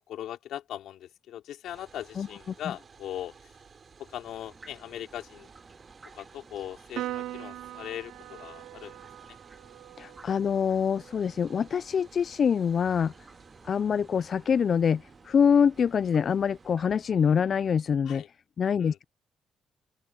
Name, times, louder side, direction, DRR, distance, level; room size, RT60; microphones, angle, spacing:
voice 1, 0.0-3.6 4.0-5.5 6.1-9.4 18.0-18.3 18.8-19.0, left 11 dB, 80° left, 3.9 m, -40 dB
sound 1, 1.6-16.7, right 5 dB, 40° right, 4.0 m, -55 dB
sound 2, 4.2-17.7, right 3 dB, 25° right, 2.6 m, -57 dB
Piano, 7.0-13.6, right 14 dB, 85° right, 0.5 m, -43 dB
voice 2, 10.0-13.1 13.6-18.2 18.6-19.0, left 7 dB, 50° left, 0.3 m, -25 dB
open air
cardioid pair, 90°, 0 cm